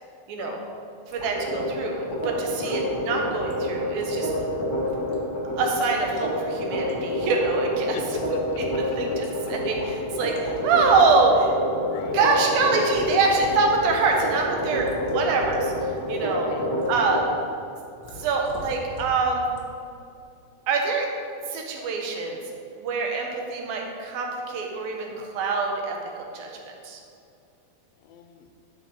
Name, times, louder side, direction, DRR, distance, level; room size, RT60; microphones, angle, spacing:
voice 1, 0.3-0.6 1.1-4.3 5.6-8.0 8.3-8.4 9.0-11.5 12.1-15.7 16.1-16.5 16.9-17.3 18.2-19.5 20.7-21.1 21.5-22.4 22.8-26.6 26.8-27.0, right 4 dB, 85° right, 1 dB, 2.8 m, -24 dB
sound 1, 1.1-1.3 1.6-1.7 2.1-2.4 2.9-3.1 3.4-3.6 3.9-4.0 4.3-5.1 5.5-6.2 6.7-6.9 7.2-7.7 8.2-8.3 8.6-10.0 10.2-10.6 10.9-11.2 11.5-11.6 12.0-12.5 12.9-13.6 13.9-14.2 14.6-15.6 15.9-16.2 16.8-17.1 18.0-19.2 19.5-19.6, left 1 dB, 60° left, 1.3 m, -40 dB
sound 2, 1.2-17.2, left 1 dB, 35° left, 0.8 m, -28 dB
voice 2, 7.9-9.2 9.4-9.5 11.9-12.2 16.5-16.7 17.2-17.4 28.0-28.5, left 8 dB, 90° left, 7 dB, 2.4 m, -38 dB
11.0 x 5.7 x 4.1 m, 2.6 s
omnidirectional pair, 4.0 m